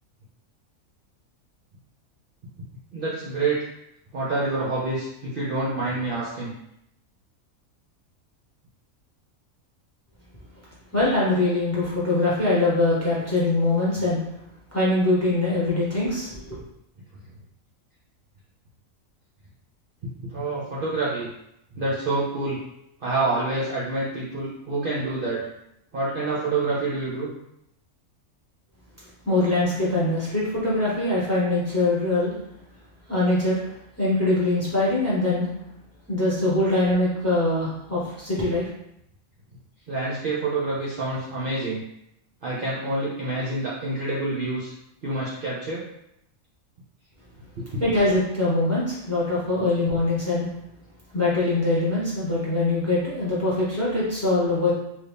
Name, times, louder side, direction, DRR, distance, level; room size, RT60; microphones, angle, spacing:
voice 1, 2.9-3.7 4.1-6.5 20.0-21.3 21.7-22.6 23.0-25.5 25.9-27.3 39.9-41.8 42.4-44.7 45.0-45.9 47.6-47.8, right 2 dB, 50° right, -7 dB, 0.7 m, -27 dB
voice 2, 10.9-14.2 14.7-16.6 29.2-32.3 33.1-33.5 34.0-35.5 36.1-38.7 47.8-50.5 51.1-54.7, left 2 dB, 10° left, -8 dB, 1.0 m, -23 dB
2.9 x 2.6 x 3.4 m, 0.78 s
omnidirectional pair, 1.5 m